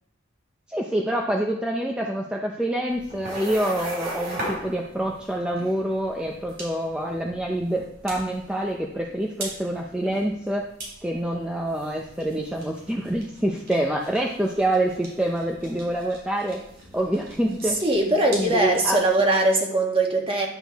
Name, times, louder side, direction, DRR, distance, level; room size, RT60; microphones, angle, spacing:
voice 1, 0.7-10.6 11.0-16.6 16.9-17.8 18.3-19.0, right 1 dB, 5° right, 0 dB, 0.6 m, -26 dB
sound 1, 2.9-19.2, right 1 dB, 55° right, 3.8 m, -39 dB
voice 2, 17.7-20.5, right 2 dB, 30° right, 0 dB, 1.6 m, -21 dB
11.0 x 6.2 x 3.5 m, 0.75 s
head